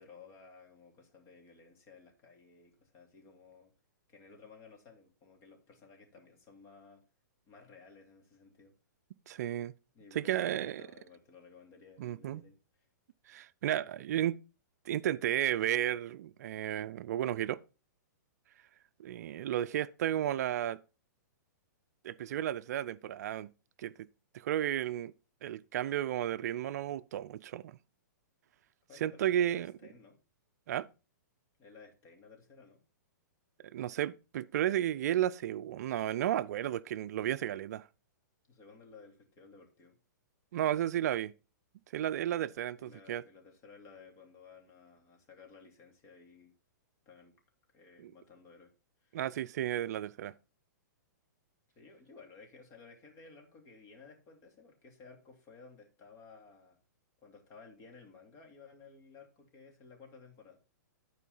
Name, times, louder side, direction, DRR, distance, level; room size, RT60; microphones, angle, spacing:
voice 1, 0.0-3.7 4.1-7.0 7.5-8.7 9.9-12.9 28.9-30.2 31.6-32.8 38.5-40.0 42.7-46.5 47.1-47.3 47.7-48.7 49.0-49.2 51.8-56.8 57.2-60.6, left 4 dB, 30° left, 2.7 m, -56 dB
voice 2, 9.3-9.7 10.1-10.8 12.0-12.4 13.3-14.4 14.9-17.6 19.0-20.8 22.0-23.5 23.8-23.9 24.3-25.1 25.4-27.8 29.0-29.7 30.7-30.9 33.7-37.9 40.5-41.3 41.9-43.2 48.0-48.1 49.1-50.3, right 11 dB, 60° right, 0.4 m, -33 dB
11.5 x 4.6 x 5.4 m
hypercardioid pair, 145°, 10 cm